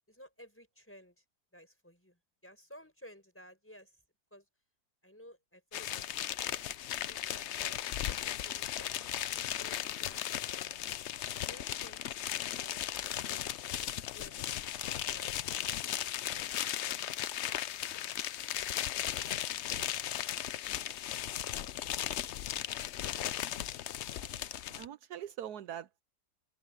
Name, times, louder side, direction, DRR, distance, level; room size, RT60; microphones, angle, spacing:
voice 1, 0.1-1.2 1.5-4.0 4.3-4.5 5.0-6.6 6.9-11.0 11.5-12.0 12.3-14.6 15.0-17.0, equal, 5° left, 5.9 m, -56 dB
sound 1, 5.7-24.9, left 11 dB, 65° left, 0.7 m, -36 dB
voice 2, 24.2-26.0, right 10 dB, 75° right, 1.2 m, -45 dB
omnidirectional pair, 1.7 m